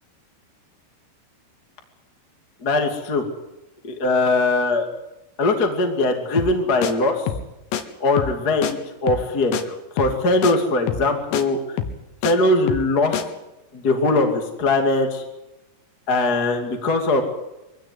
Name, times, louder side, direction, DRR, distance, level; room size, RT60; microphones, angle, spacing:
voice 1, 2.6-3.2 3.8-4.8 5.4-7.2 8.0-9.5 10.0-11.6 12.2-13.2 13.7-15.2 16.1-17.2, left 2 dB, 30° left, 4 dB, 2.0 m, -20 dB
sound 1, 6.4-6.6 6.8-6.9 7.3-7.5 7.7-7.8 8.2-8.4 8.6-8.7 9.1-9.3 9.5-9.6 10.0-10.2 10.4-10.5 10.9-11.1 11.3-11.4 11.8-12.3 12.7-12.9 13.1-13.2, left 8 dB, 90° left, 4.1 m, -26 dB
23.5 x 16.0 x 9.8 m, 0.95 s
omnidirectional pair, 5.8 m